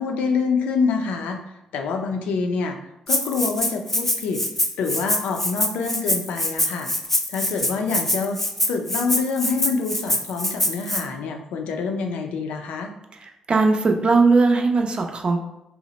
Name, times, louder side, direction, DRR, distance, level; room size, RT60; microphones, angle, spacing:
voice 1, 0.0-1.4 1.7-2.8 3.1-4.4 4.8-6.9 7.3-8.4 8.7-12.9, left 4 dB, 75° left, 4 dB, 0.4 m, -26 dB
Rattle (instrument), 3.1-11.0, left 1 dB, 10° left, 0.4 m, -24 dB
voice 2, 13.5-15.4, right 3 dB, 45° right, 3 dB, 0.5 m, -18 dB
2.8 x 2.0 x 4.0 m, 0.88 s
hypercardioid pair, 45°, 2 cm